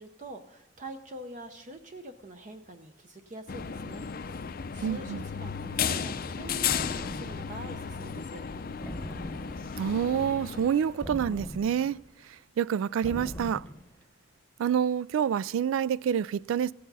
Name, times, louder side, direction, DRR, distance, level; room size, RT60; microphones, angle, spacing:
voice 1, 0.0-4.1 4.3-8.4, right 1 dB, 40° right, 0.6 m, -45 dB
sound 1, 3.5-11.0, left 7 dB, 50° left, 0.5 m, -34 dB
voice 2, 4.8-5.2 9.8-12.0 12.2-13.7 14.6-16.7, right 8 dB, 85° right, 0.3 m, -27 dB
sound 2, 6.7-7.6 8.8-9.8 11.0-12.0 13.0-13.9, left 1 dB, 10° left, 1.0 m, -40 dB
15.5 x 8.5 x 4.0 m
head